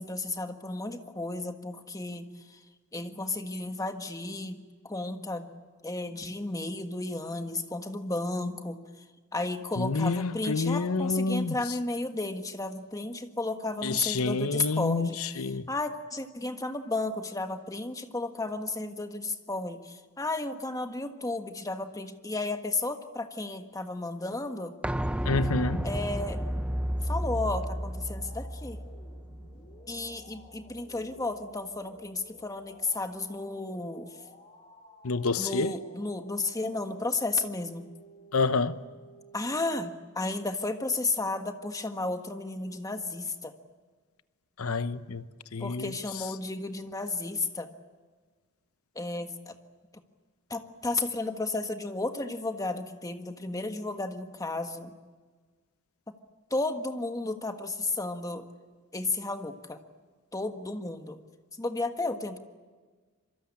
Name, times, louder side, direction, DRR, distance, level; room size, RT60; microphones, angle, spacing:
voice 1, 0.0-2.6 2.9-5.5 5.8-9.0 9.3-24.7 25.8-26.4 27.0-28.8 29.9-34.2 35.4-37.9 39.3-43.5 45.6-47.7 48.9-49.6 50.5-54.9 56.1-56.2 56.5-58.5 58.9-59.8 60.3-61.2 61.6-62.4, left 2 dB, 15° left, 1.5 m, -33 dB
voice 2, 9.8-11.6 13.8-15.6 25.2-25.8 35.0-35.7 38.3-38.8 44.6-45.2 45.5-46.2, left 4 dB, 70° left, 0.9 m, -28 dB
sound 1, 24.8-30.5 30.8-30.9, equal, 5° right, 0.7 m, -32 dB
sound 2, 27.1-39.9, equal, 35° left, 4.9 m, -55 dB
26.5 x 24.0 x 8.7 m
head